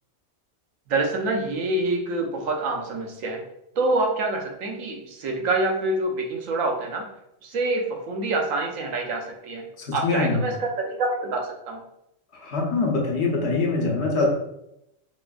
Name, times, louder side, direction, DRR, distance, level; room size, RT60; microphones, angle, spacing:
voice 1, 0.9-3.5 3.8-7.1 7.4-11.8, right 2 dB, 85° right, 1 dB, 1.1 m, -26 dB
voice 2, 9.8-10.4 12.3-14.3, left 3 dB, 60° left, -1 dB, 0.9 m, -24 dB
4.1 x 2.5 x 2.3 m, 0.81 s
omnidirectional pair, 1.3 m